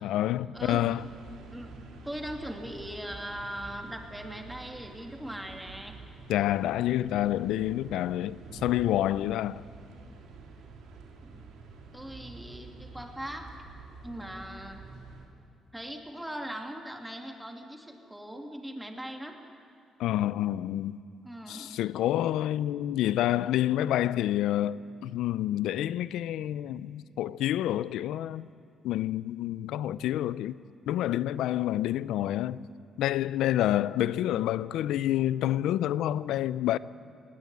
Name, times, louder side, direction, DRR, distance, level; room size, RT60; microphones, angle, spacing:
voice 1, 0.0-1.1 6.3-9.6 20.0-21.0 21.5-28.5 28.8-30.6 30.9-32.7 33.0-36.8, left 13 dB, 85° left, 0.4 m, -28 dB
voice 2, 0.5-0.9 1.5-6.0 11.2-11.4 11.9-13.5 14.0-14.8 15.7-19.4 21.2-21.8, equal, 5° right, 2.6 m, -40 dB
sound 1, 0.6-15.3, right 3 dB, 85° right, 3.0 m, -48 dB
19.5 x 17.0 x 9.5 m
cardioid pair, 90°, 0 cm